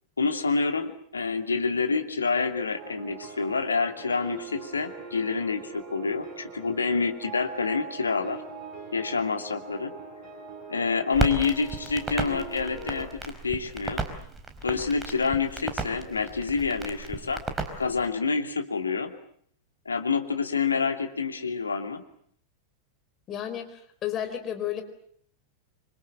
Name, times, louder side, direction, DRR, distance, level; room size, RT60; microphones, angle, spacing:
voice 1, 0.2-8.4 8.9-9.9 10.7-14.0 14.6-17.4 17.8-19.1 19.8-22.0, left 4 dB, 75° left, 5 dB, 2.7 m, -27 dB
sound 1, 2.7-13.1, right 5 dB, 35° right, 7.5 m, -42 dB
Crackle, 11.1-18.1, right 3 dB, 15° right, 4.5 m, -34 dB
voice 2, 23.3-24.8, left 10 dB, 30° left, 7 dB, 4.5 m, -32 dB
26.5 x 25.5 x 7.8 m, 0.64 s
figure-of-eight pair, 90°, 0 cm